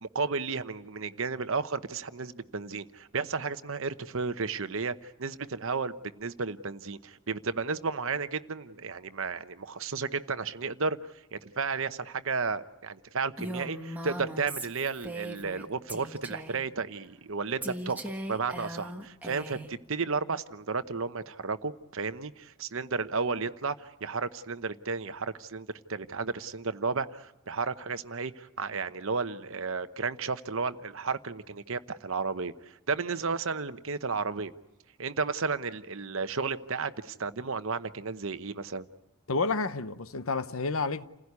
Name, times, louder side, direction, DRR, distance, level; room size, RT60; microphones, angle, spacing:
voice 1, 0.0-11.0 11.3-18.0 18.3-34.5 35.0-38.8, right 4 dB, 60° right, 0.9 m, -33 dB
Female speech woman speaking, 13.4-15.6 15.9-16.6 17.6-19.7, right 1 dB, 5° right, 1.5 m, -39 dB
voice 2, 39.3-41.0, left 3 dB, 65° left, 0.9 m, -30 dB
29.0 x 16.0 x 9.6 m
head